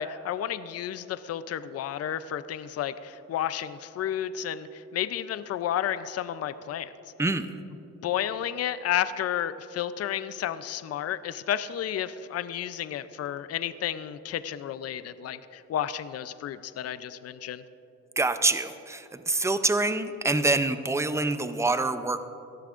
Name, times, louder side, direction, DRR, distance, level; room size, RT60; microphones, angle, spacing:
voice 1, 0.0-6.9 8.0-17.6, left 10 dB, 55° left, 13 dB, 0.5 m, -32 dB
voice 2, 18.2-22.2, right 2 dB, 10° right, 10 dB, 0.6 m, -26 dB
18.0 x 12.5 x 2.5 m, 2.9 s
cardioid pair, 90°, 30 cm